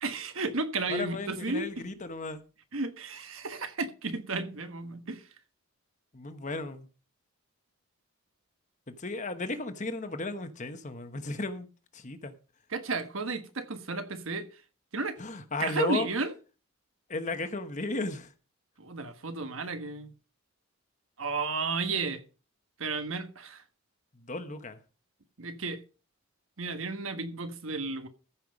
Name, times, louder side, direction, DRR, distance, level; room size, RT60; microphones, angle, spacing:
voice 1, 0.0-1.7 2.7-5.3 12.7-14.6 14.9-15.2 15.6-16.3 18.8-20.1 21.2-22.2 22.8-23.6 25.4-25.8 26.6-28.1, right 3 dB, 70° right, 1.4 m, -33 dB
voice 2, 0.9-2.4 6.1-6.9 8.9-11.7 11.9-12.4 15.2-16.1 17.1-18.3 24.1-24.8, left 2 dB, 35° left, 1.1 m, -35 dB
14.5 x 5.7 x 5.2 m
head